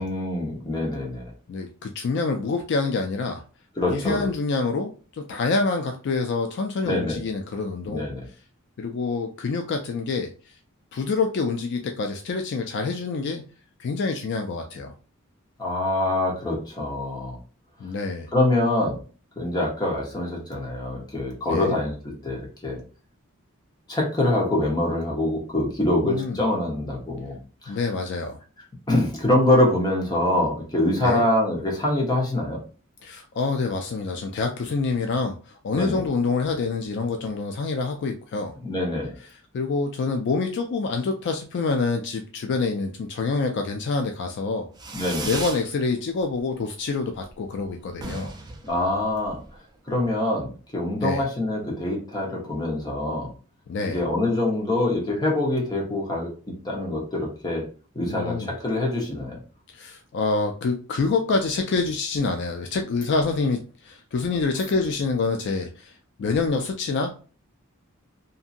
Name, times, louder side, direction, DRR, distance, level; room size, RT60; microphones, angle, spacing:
voice 1, 0.0-1.3 3.8-4.3 6.8-7.2 7.8-8.2 15.6-17.4 18.3-19.0 19.4-22.8 23.9-27.4 27.6-27.8 28.9-32.6 35.7-36.0 38.6-39.1 44.9-45.3 48.6-49.4 49.9-53.3 53.8-56.3 56.6-57.6 57.9-59.4, left 1 dB, 20° left, -2 dB, 0.9 m, -24 dB
voice 2, 1.5-3.4 3.8-8.0 8.8-10.5 10.9-13.4 13.8-14.9 17.8-18.3 21.5-21.8 26.0-26.4 27.7-28.4 31.0-31.2 33.0-38.6 39.5-44.7 45.2-48.3 51.0-51.2 53.7-54.0 58.0-58.5 59.7-67.1, left 4 dB, 55° left, 4 dB, 0.3 m, -26 dB
Fireworks, 44.7-45.7 46.0-46.6 46.9-47.0 47.2-47.3 47.6-47.7 47.9-49.6, right 3 dB, 20° right, 0.4 m, -36 dB
2.7 x 2.6 x 2.5 m, 0.38 s
head